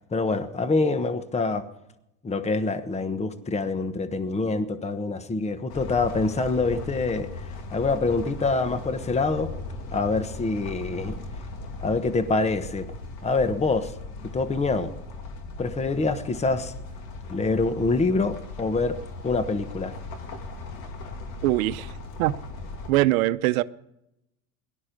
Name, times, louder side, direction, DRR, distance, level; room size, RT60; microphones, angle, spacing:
voice 1, 0.1-1.6 2.2-7.5 7.7-9.5 9.9-11.2 11.8-12.9 13.2-13.9 14.3-14.9 15.6-16.7 17.3-19.0 19.2-19.9, left 3 dB, 15° left, 11 dB, 1.2 m, -25 dB
sound 1, 5.7-22.9, left 3 dB, 60° left, 2.6 m, -38 dB
voice 2, 21.4-21.9 22.2-22.3 22.9-23.6, right 17 dB, 80° right, 14 dB, 0.8 m, -22 dB
17.5 x 12.0 x 5.3 m, 0.84 s
supercardioid pair, 100°, 41 cm